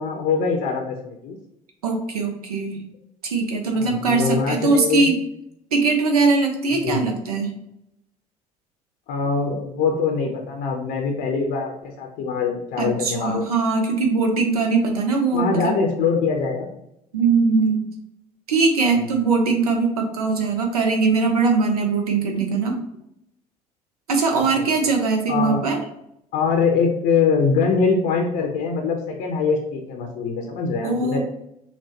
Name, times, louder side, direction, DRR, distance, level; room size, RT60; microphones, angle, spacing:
voice 1, 0.0-1.4 3.8-5.1 6.8-7.1 9.1-13.5 15.3-16.7 24.3-24.7 25.3-25.6 26.3-31.2, left 5 dB, 55° left, 2 dB, 0.7 m, -23 dB
voice 2, 1.8-2.8 3.2-5.1 5.7-7.5 12.8-15.7 17.1-17.8 18.5-22.8 24.1-25.8 30.8-31.2, right 4 dB, 80° right, 3 dB, 0.7 m, -21 dB
5.8 x 2.2 x 2.8 m, 0.80 s
figure-of-eight pair, 55°, 19 cm